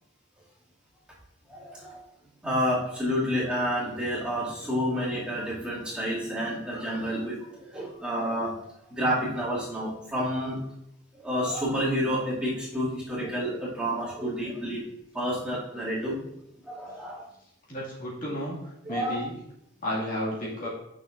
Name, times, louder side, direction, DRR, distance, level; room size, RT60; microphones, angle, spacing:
voice 1, 1.5-2.0 2.4-8.6 8.9-10.6 11.1-14.8 15.1-16.2 16.6-17.3 18.8-19.2, equal, 5° right, -9 dB, 2.3 m, -29 dB
voice 2, 17.7-18.6 18.9-19.3 19.8-20.7, equal, 45° left, -6 dB, 2.1 m, -32 dB
10.5 x 6.2 x 2.5 m, 0.82 s
head